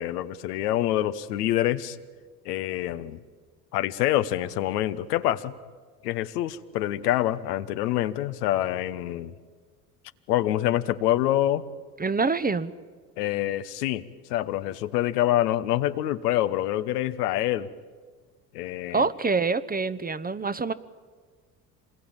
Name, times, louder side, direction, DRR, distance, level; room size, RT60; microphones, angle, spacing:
voice 1, 0.0-2.0 2.4-3.2 3.7-5.6 6.0-9.3 10.3-11.6 13.2-17.7 18.5-19.1, left 13 dB, 75° left, 1.3 m, -26 dB
voice 2, 12.0-12.7 18.9-20.7, right 4 dB, 20° right, 1.1 m, -26 dB
27.0 x 21.5 x 8.9 m
hypercardioid pair, 60°, 48 cm